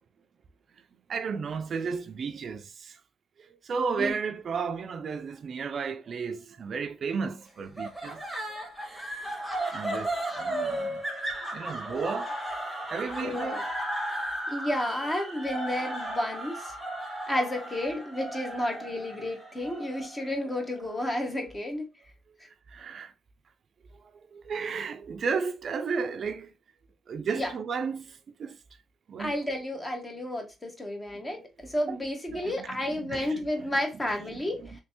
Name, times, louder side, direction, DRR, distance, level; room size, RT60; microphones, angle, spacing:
voice 1, 1.1-3.0 3.6-8.2 9.7-10.1 10.4-11.0 11.5-12.3 12.9-13.7 22.7-23.1 24.3-26.5 27.1-28.6 29.1-29.3 31.2-31.3 31.9-32.0 32.3-33.4, right 5 dB, 50° right, 0.4 m, -33 dB
sound 1, 7.8-20.9, right 1 dB, ahead, 1.4 m, -35 dB
voice 2, 13.2-13.7 14.5-16.7 17.3-21.9 27.3-27.5 29.2-34.8, left 1 dB, 20° left, 1.1 m, -31 dB
3.2 x 3.1 x 2.9 m
cardioid pair, 90°, 0 cm